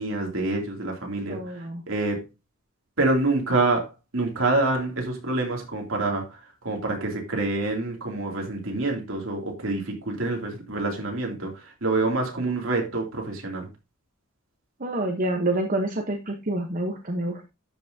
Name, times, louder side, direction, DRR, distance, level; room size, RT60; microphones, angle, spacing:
voice 1, 0.0-1.4 1.9-2.2 3.0-3.9 4.1-6.2 6.6-11.5 11.8-13.7, right 2 dB, 65° right, 1 dB, 2.6 m, -26 dB
voice 2, 1.2-1.8 14.8-17.5, right 1 dB, 40° right, 3 dB, 0.9 m, -28 dB
12.0 x 5.7 x 2.7 m, 0.27 s
head